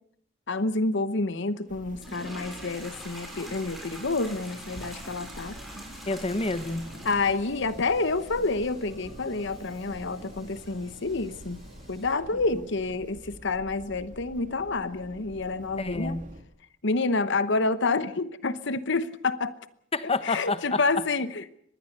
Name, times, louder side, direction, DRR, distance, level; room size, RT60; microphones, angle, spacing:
voice 1, 0.5-5.5 7.0-11.6 11.9-16.2 16.8-19.6 20.2-21.5, left 3 dB, 60° left, 14 dB, 1.0 m, -28 dB
sound 1, 1.7-16.4, right 1 dB, 40° right, 2.4 m, -47 dB
sound 2, 2.0-12.1, equal, ahead, 6.7 m, -46 dB
voice 2, 6.1-6.8 15.8-16.2 19.9-20.8, left 3 dB, 30° left, 13 dB, 1.1 m, -28 dB
Subway metro underground, 6.5-12.7, left 1 dB, 85° left, 6.2 m, -51 dB
24.5 x 20.5 x 6.8 m, 0.66 s
head